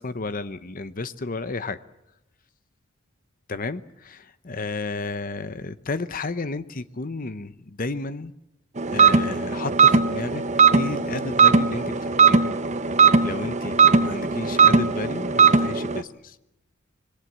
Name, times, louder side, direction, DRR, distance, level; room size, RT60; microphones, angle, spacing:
voice 1, 0.0-1.8 3.5-8.4 8.9-10.4 10.7-12.5 13.2-16.4, left 3 dB, 40° left, 13 dB, 0.8 m, -32 dB
sound 1, 8.8-16.0, right 5 dB, 35° right, 1.0 m, -19 dB
26.5 x 22.5 x 7.5 m, 0.90 s
head